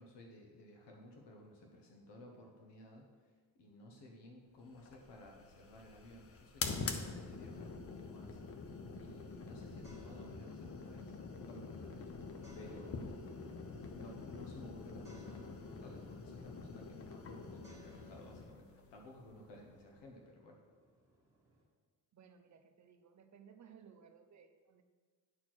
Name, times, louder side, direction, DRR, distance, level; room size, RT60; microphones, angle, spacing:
voice 1, 0.0-8.4 9.0-12.1 12.5-13.3 13.9-20.6, left 1 dB, 85° left, 1 dB, 1.3 m, -55 dB
sound 1, 4.8-20.1, left 4 dB, 35° left, 0.7 m, -46 dB
sound 2, 8.4-21.6, right 1 dB, 5° right, 1.9 m, -68 dB
voice 2, 22.1-24.8, right 7 dB, 45° right, 7 dB, 0.7 m, -60 dB
9.6 x 4.4 x 6.2 m, 1.5 s
wide cardioid pair, 175°, 41 cm